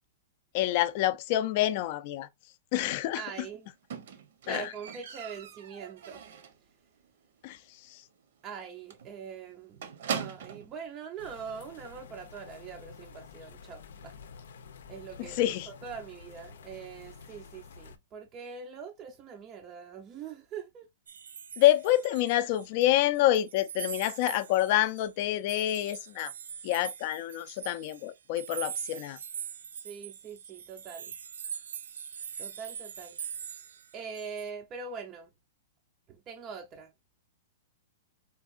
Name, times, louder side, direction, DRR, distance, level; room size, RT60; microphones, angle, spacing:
voice 1, 0.5-2.3 2.7-3.2 4.5-4.7 7.4-8.0 15.2-15.7 21.6-26.3 26.6-29.2, left 14 dB, 35° left, 0.4 m, -27 dB
voice 2, 3.1-3.7 4.4-6.2 8.4-9.8 10.1-14.1 14.9-20.9 29.8-31.1 32.4-33.2 33.9-35.3 36.1-36.9, right 6 dB, 20° right, 0.5 m, -43 dB
Squeak, 3.9-6.7 7.0-7.4 7.7-7.8 8.2-8.3 8.5-8.7 8.9-10.7 11.6-11.7, right 7 dB, 60° right, 0.8 m, -40 dB
sound 1, 11.2-18.0, left 6 dB, 80° left, 0.6 m, -50 dB
sound 2, 21.1-22.9 23.1-34.5, right 8 dB, 85° right, 0.4 m, -42 dB
4.5 x 2.3 x 2.4 m
hypercardioid pair, 170°, 0 cm